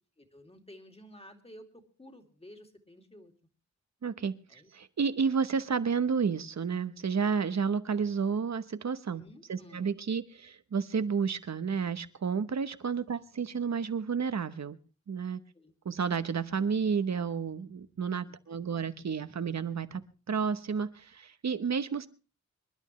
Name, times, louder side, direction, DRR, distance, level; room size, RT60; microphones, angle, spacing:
voice 1, 0.2-3.3 4.5-4.7 9.1-9.9 13.1-13.2 15.5-15.7 18.3-18.4, equal, 20° left, 5 dB, 2.4 m, -53 dB
voice 2, 4.0-9.2 9.5-14.8 15.1-15.4 15.8-20.0 20.3-22.1, right 6 dB, 65° right, 12 dB, 1.0 m, -31 dB
26.5 x 11.5 x 3.1 m, 0.34 s
wide cardioid pair, 110°, 29 cm